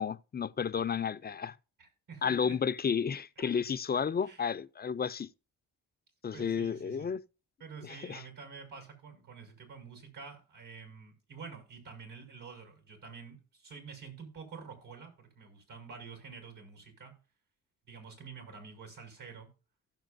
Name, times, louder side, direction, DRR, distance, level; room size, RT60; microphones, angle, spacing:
voice 1, 0.0-1.5 2.2-5.3 6.2-7.2 7.8-8.2, left 6 dB, 30° left, 0.5 m, -32 dB
voice 2, 1.8-2.6 3.4-3.5 4.2-4.5 6.3-7.1 7.6-17.1 17.9-19.5, right 5 dB, 70° right, 6.0 m, -48 dB
16.0 x 7.3 x 2.6 m
cardioid pair, 75°, 34 cm